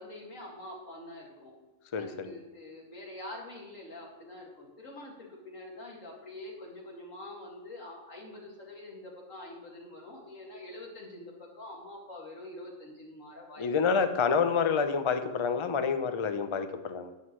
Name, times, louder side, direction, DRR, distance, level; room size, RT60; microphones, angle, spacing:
voice 1, 0.0-1.5 2.0-13.7, left 1 dB, 85° left, -1 dB, 2.6 m, -45 dB
voice 2, 1.9-2.3 13.6-17.1, left 6 dB, 35° left, 8 dB, 0.5 m, -28 dB
12.0 x 9.3 x 3.2 m, 1.1 s
omnidirectional pair, 1.3 m